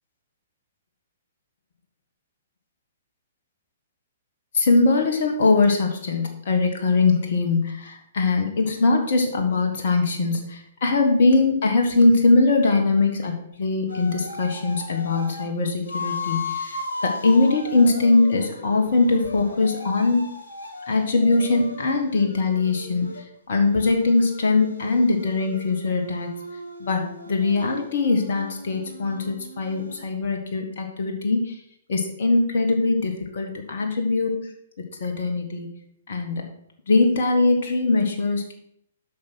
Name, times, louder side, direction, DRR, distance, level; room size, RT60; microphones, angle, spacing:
voice 1, 4.5-20.3 20.9-23.1 23.5-26.3 26.8-31.6 31.9-34.3 35.0-35.7 36.1-36.5 36.9-38.5, left 3 dB, 55° left, 3 dB, 1.6 m, -21 dB
sound 1, 13.9-15.5 15.9-23.2 23.6-30.0, left 3 dB, 70° left, 1.9 m, -36 dB
8.4 x 6.0 x 6.4 m, 0.71 s
figure-of-eight pair, 115°, 0 cm